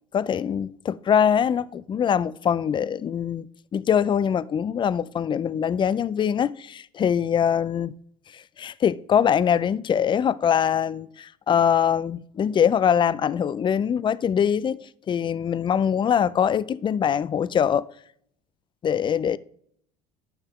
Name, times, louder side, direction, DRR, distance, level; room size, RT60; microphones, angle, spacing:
voice 1, 0.1-7.9 8.3-17.9 18.8-19.4, left 8 dB, 25° left, 0.3 m, -23 dB
10.0 x 5.9 x 3.1 m
supercardioid pair, 85°, 19 cm